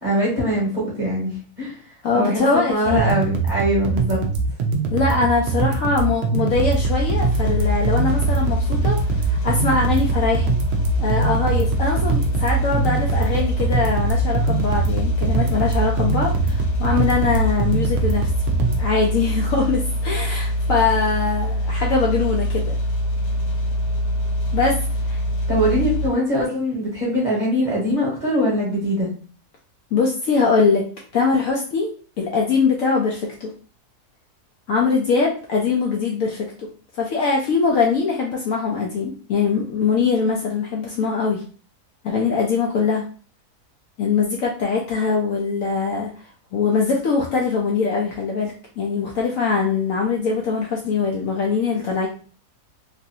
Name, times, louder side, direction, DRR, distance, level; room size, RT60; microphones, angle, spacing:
voice 1, 0.0-1.8 2.1-4.2 25.5-29.1, equal, 30° right, -4 dB, 1.1 m, -22 dB
voice 2, 2.0-3.0 4.9-9.0 9.3-10.5 11.0-18.3 18.8-22.7 24.5-24.8 25.1-25.2 29.9-30.8 31.1-33.5 34.7-36.7 36.9-41.4 42.0-43.0 44.0-46.1 46.5-52.1, left 4 dB, 70° left, -1 dB, 0.8 m, -22 dB
sound 1, 2.8-18.8, right 4 dB, 85° right, 0.5 m, -23 dB
sound 2, 6.5-26.1, equal, 90° left, 1.3 m, -24 dB
3.0 x 2.5 x 2.7 m, 0.40 s
omnidirectional pair, 1.7 m